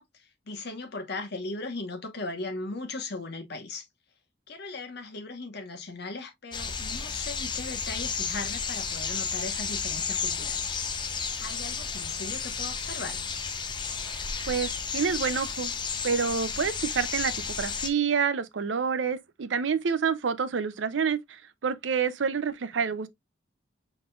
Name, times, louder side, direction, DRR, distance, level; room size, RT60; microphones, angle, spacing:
voice 1, 0.0-3.9 4.5-10.8 11.4-13.2, left 3 dB, 60° left, 1.2 m, -38 dB
sound 1, 6.5-17.9, left 5 dB, 25° left, 0.6 m, -32 dB
voice 2, 14.5-15.7 16.0-17.3 17.6-23.1, right 6 dB, 75° right, 0.5 m, -28 dB
5.0 x 4.0 x 2.3 m
head